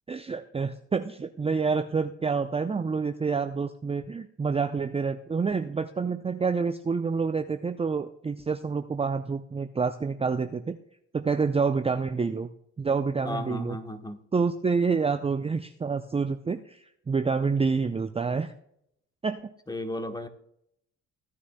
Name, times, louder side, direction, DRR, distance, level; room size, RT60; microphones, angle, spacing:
voice 1, 0.1-10.8 11.1-12.5 12.8-13.8 14.3-18.5 19.2-19.4, right 5 dB, 20° right, 8 dB, 0.6 m, -28 dB
voice 2, 13.2-14.2 19.7-20.3, left 1 dB, 10° left, 8 dB, 1.2 m, -34 dB
16.0 x 9.6 x 2.2 m, 0.74 s
hypercardioid pair, 60°, 33 cm